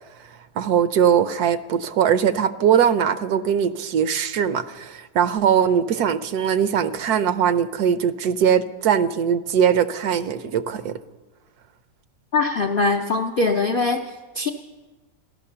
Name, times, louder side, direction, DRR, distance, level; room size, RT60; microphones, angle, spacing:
voice 1, 0.6-11.0, right 8 dB, 70° right, 13 dB, 1.1 m, -21 dB
voice 2, 12.3-14.5, left 3 dB, 60° left, 4 dB, 0.5 m, -22 dB
15.0 x 12.0 x 6.7 m, 1.3 s
omnidirectional pair, 1.8 m